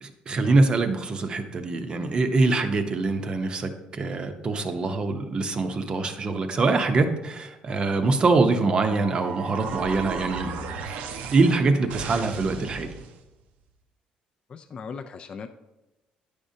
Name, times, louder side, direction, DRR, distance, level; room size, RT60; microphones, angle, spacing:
voice 1, 0.0-10.5 10.9-11.0 11.3-12.9, right 3 dB, 35° right, 7 dB, 0.6 m, -24 dB
sound 1, 8.6-13.2, right 5 dB, 75° right, 0.6 m, -35 dB
voice 2, 14.5-15.5, left 6 dB, 35° left, 7 dB, 0.3 m, -38 dB
9.6 x 5.0 x 2.7 m, 0.99 s
cardioid pair, 125°, 3 cm